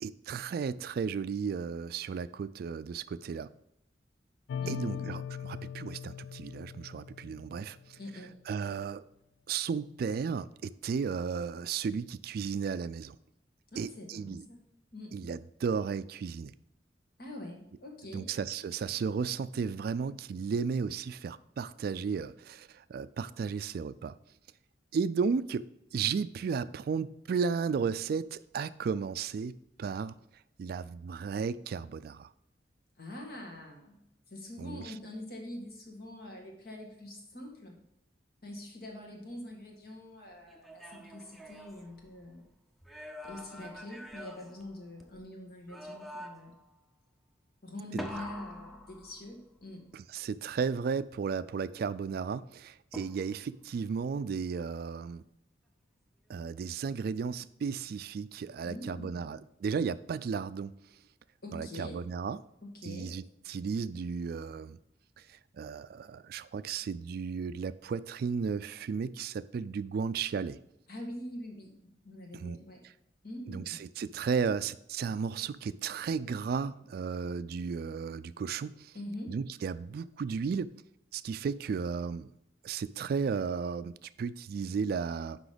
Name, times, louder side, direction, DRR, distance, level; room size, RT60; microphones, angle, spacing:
voice 1, 0.0-3.5 4.7-7.8 8.5-9.0 9.5-13.2 13.8-14.4 15.1-16.5 18.1-24.2 24.9-25.7 25.9-30.1 30.6-32.3 34.6-34.9 49.9-55.2 56.3-60.7 61.5-62.4 62.8-64.8 65.3-70.6 72.3-72.6 73.5-78.9 79.3-80.7 81.1-82.3 82.6-85.4, right 5 dB, 60° right, 0.3 m, -34 dB
sound 1, 4.5-8.0, left 8 dB, 80° left, 0.3 m, -40 dB
voice 2, 4.6-5.2 8.0-8.4 13.7-14.6 14.9-15.1 17.2-18.3 33.0-34.0 34.3-37.8 38.4-42.4 43.2-46.5 47.6-49.8 58.6-59.3 61.4-62.0 62.6-63.1 70.9-71.7 72.0-72.8 73.2-73.8 78.9-79.3, left 1 dB, 60° left, 1.8 m, -44 dB
sound 2, 40.5-42.4 42.8-45.2 45.7-46.6 48.0-49.6 52.9-53.6, equal, ahead, 0.6 m, -45 dB
6.1 x 5.2 x 5.1 m
head